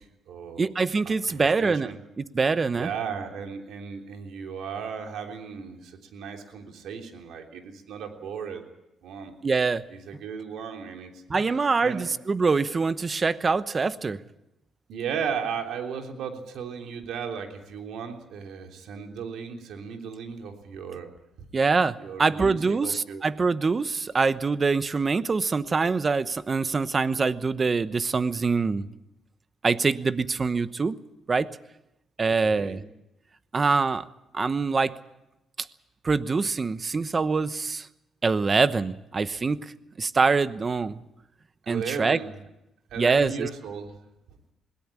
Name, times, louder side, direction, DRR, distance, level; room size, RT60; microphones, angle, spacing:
voice 1, 0.0-0.7 1.0-2.0 2.7-8.6 9.0-9.3 9.9-11.2 11.8-12.2 14.9-21.1 22.0-23.2 32.3-32.8 41.6-42.4 42.9-44.0, right 6 dB, 80° right, 3 dB, 3.4 m, -36 dB
voice 2, 0.6-2.9 9.4-9.8 11.3-14.2 21.5-28.9 29.6-31.0 31.3-31.5 32.2-32.8 33.5-34.1 34.3-34.9 36.0-37.9 38.2-41.0 41.7-42.2 43.0-43.5, right 4 dB, 35° right, 14 dB, 1.0 m, -24 dB
21.0 x 17.0 x 8.6 m, 0.89 s
cardioid pair, 90°, 0 cm